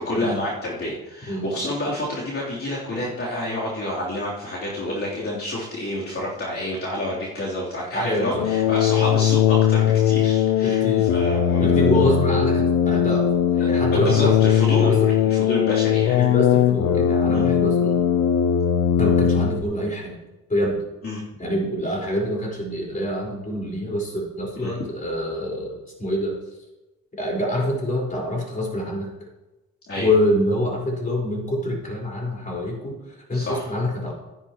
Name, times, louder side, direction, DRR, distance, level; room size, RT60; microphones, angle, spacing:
voice 1, 0.0-12.0 13.6-16.2 17.3-17.5 21.0-21.2 24.5-24.7 29.9-30.1 33.3-33.7, left 1 dB, 45° left, -7 dB, 3.2 m, -29 dB
voice 2, 7.9-8.5 10.6-11.1 11.6-13.4 13.7-14.4 14.8-15.1 16.1-18.0 19.0-20.2 20.5-20.8 21.4-26.4 27.2-29.1 30.0-34.1, left 1 dB, 25° left, -2 dB, 4.4 m, -25 dB
sound 1, 8.3-19.6, left 9 dB, 85° left, 0.6 m, -19 dB
13.0 x 10.5 x 3.0 m, 1.0 s
cardioid pair, 90°, 30 cm